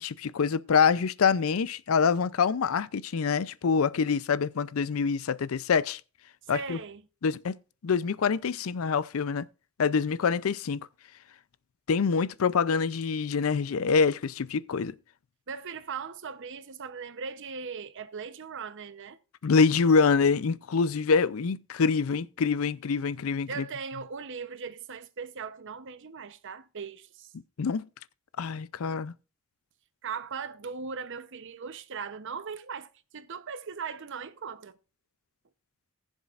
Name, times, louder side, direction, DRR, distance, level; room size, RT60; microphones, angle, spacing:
voice 1, 0.0-6.0 6.5-6.8 7.2-7.5 7.8-9.5 9.8-10.9 11.9-15.0 19.4-23.6 27.6-27.9 28.4-29.1, left 5 dB, 75° left, 0.5 m, -25 dB
voice 2, 6.4-7.0 15.5-19.2 23.5-27.3 30.0-34.8, right 5 dB, 60° right, 0.8 m, -39 dB
20.0 x 7.2 x 2.5 m
head